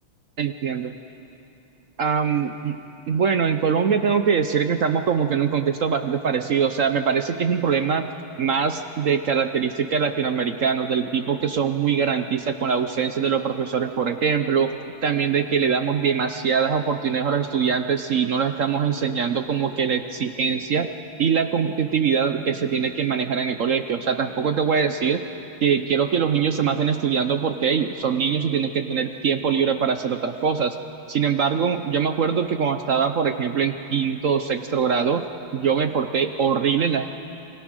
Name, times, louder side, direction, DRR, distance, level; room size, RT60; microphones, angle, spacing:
voice 1, 0.4-0.9 2.0-2.7 3.1-8.1 8.4-14.7 15.0-20.9 21.2-25.2 25.6-30.8 31.1-35.2 35.5-37.2, right 6 dB, 60° right, 8 dB, 0.8 m, -23 dB
28.0 x 24.0 x 6.3 m, 2.8 s
omnidirectional pair, 2.2 m